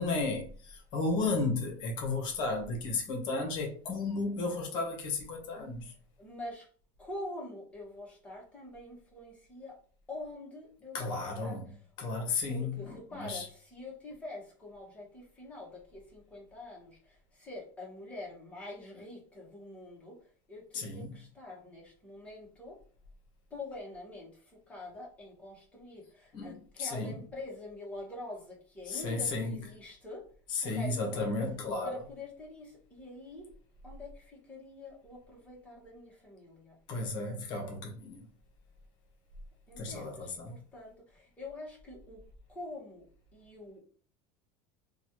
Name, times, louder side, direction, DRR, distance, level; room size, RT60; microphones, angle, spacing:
voice 1, 0.0-5.9 10.9-11.6 12.0-13.5 20.7-21.1 26.3-27.2 28.9-29.5 30.5-31.9 36.9-38.2 39.8-40.5, left 3 dB, 45° left, 1.0 m, -33 dB
voice 2, 6.2-6.7 7.0-9.8 10.1-11.8 12.5-20.2 20.5-22.8 23.5-30.3 30.6-31.2 31.8-33.5 33.8-36.8 39.7-43.0 43.3-43.8, left 2 dB, 10° left, 1.2 m, -45 dB
3.1 x 2.3 x 2.9 m
supercardioid pair, 155°, 11 cm